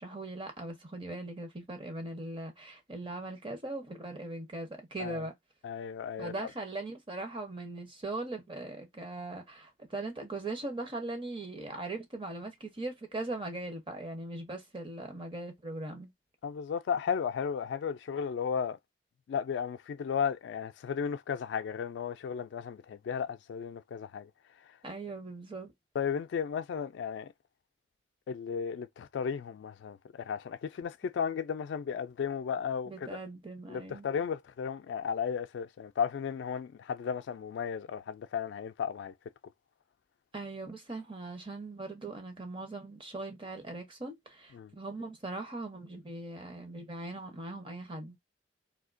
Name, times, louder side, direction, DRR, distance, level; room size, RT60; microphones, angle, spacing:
voice 1, 0.0-5.3 6.2-16.1 24.8-25.7 32.9-34.1 40.3-48.2, right 2 dB, 30° right, 0.8 m, -40 dB
voice 2, 5.6-6.3 16.4-18.8 19.3-24.3 26.0-27.3 28.3-33.1 33.7-39.1 44.5-44.7, left 7 dB, 80° left, 0.3 m, -34 dB
3.5 x 2.7 x 2.5 m
head